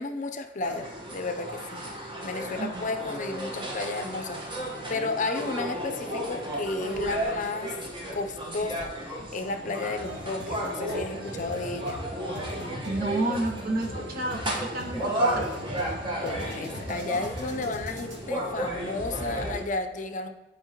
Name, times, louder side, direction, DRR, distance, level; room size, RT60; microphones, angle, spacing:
voice 1, 0.0-1.9 2.2-7.8 8.1-8.9 9.3-12.0 16.2-20.3, left 3 dB, 45° left, 7 dB, 0.5 m, -33 dB
sound 1, 0.6-19.6, right 1 dB, 30° right, 1.1 m, -33 dB
sound 2, 9.9-18.2, equal, 75° right, 1.8 m, -40 dB
voice 2, 12.8-15.5, right 2 dB, 55° right, 2 dB, 0.9 m, -31 dB
11.0 x 4.4 x 2.9 m, 1.1 s
head